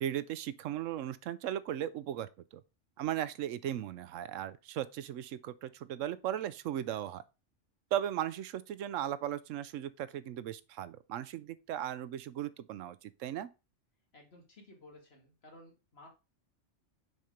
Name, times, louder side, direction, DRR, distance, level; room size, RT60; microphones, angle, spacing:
voice 1, 0.0-2.6 3.0-7.2 7.9-13.5, right 11 dB, 90° right, 1.0 m, -37 dB
voice 2, 14.1-16.1, left 1 dB, 55° left, 2.3 m, -56 dB
6.6 x 4.2 x 5.1 m
omnidirectional pair, 1.3 m